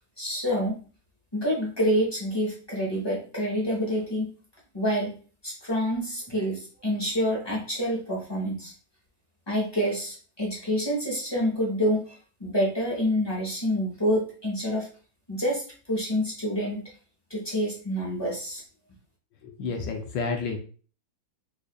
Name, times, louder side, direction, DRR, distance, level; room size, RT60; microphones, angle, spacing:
voice 1, 0.2-0.8 1.3-4.3 4.7-5.1 5.4-8.7 9.5-14.9 15.3-15.6 15.9-16.8 17.3-18.6, equal, 20° left, -4 dB, 0.6 m, -27 dB
voice 2, 19.4-20.6, left 4 dB, 75° left, 4 dB, 1.2 m, -30 dB
4.8 x 2.4 x 2.2 m, 0.40 s
omnidirectional pair, 2.1 m